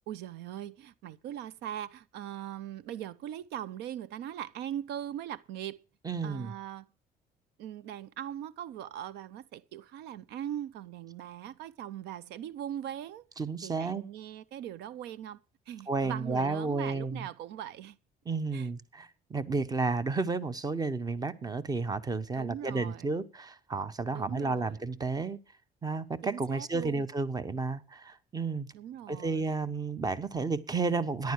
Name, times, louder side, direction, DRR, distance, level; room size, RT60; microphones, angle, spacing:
voice 1, 0.1-5.8 6.2-6.9 7.6-13.3 13.6-15.4 15.7-18.0 18.5-18.7 22.3-23.1 24.1-24.8 26.2-27.0 28.7-29.5, right 11 dB, 85° right, 0.7 m, -40 dB
voice 2, 6.0-6.5 13.4-14.0 15.9-17.3 18.2-25.4 25.8-28.7 29.1-31.3, right 4 dB, 20° right, 1.1 m, -32 dB
14.5 x 10.5 x 4.8 m
cardioid pair, 110°, 17 cm